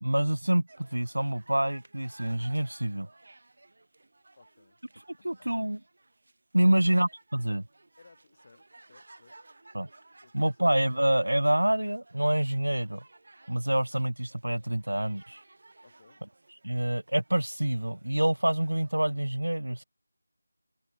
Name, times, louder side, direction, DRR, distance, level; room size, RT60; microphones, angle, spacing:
voice 1, 0.0-3.1 5.2-5.8 6.5-7.6 9.7-9.9 10.3-13.0 13.5-15.4 16.6-19.8, right 1 dB, 75° right, 0.3 m, -27 dB
sound 1, 0.7-19.2, right 2 dB, 50° right, 3.3 m, -57 dB
voice 2, 4.4-4.8 5.2-5.5 6.6-6.8 8.0-9.4 10.2-10.6 15.8-16.2, left 4 dB, 35° left, 6.4 m, -59 dB
figure-of-eight pair, 165°, 0 cm